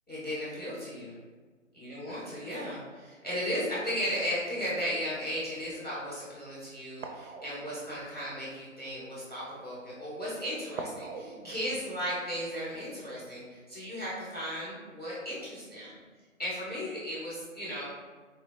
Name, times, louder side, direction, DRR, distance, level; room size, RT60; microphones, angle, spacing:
voice 1, 0.1-1.1 1.8-16.0 16.4-17.9, equal, 10° left, -11 dB, 0.6 m, -35 dB
sound 1, 7.0-8.7 10.7-13.3 13.6-13.7, right 4 dB, 70° right, 0.5 m, -45 dB
3.7 x 2.2 x 2.5 m, 1.4 s
figure-of-eight pair, 135°, 39 cm